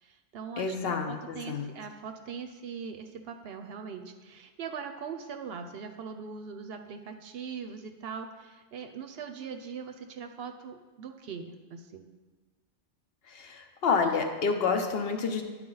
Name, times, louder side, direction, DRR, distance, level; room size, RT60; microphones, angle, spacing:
voice 1, 0.0-12.1, right 6 dB, 65° right, 6 dB, 0.7 m, -41 dB
voice 2, 0.6-1.7 13.3-15.4, left 5 dB, 60° left, 5 dB, 0.8 m, -29 dB
10.0 x 4.7 x 3.9 m, 1.3 s
omnidirectional pair, 1.2 m